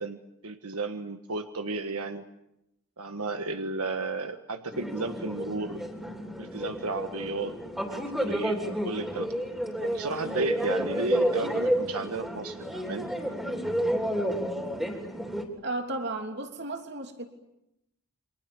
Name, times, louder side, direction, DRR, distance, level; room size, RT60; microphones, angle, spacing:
voice 1, 0.0-2.3 3.0-5.8 6.4-7.6 7.9-9.3 9.8-13.1, right 3 dB, 90° right, 7 dB, 1.5 m, -33 dB
sound 1, 4.7-15.5, equal, ahead, 3.2 m, -30 dB
voice 2, 15.6-17.3, right 2 dB, 50° right, 4 dB, 3.1 m, -34 dB
29.0 x 24.5 x 7.1 m, 0.86 s
head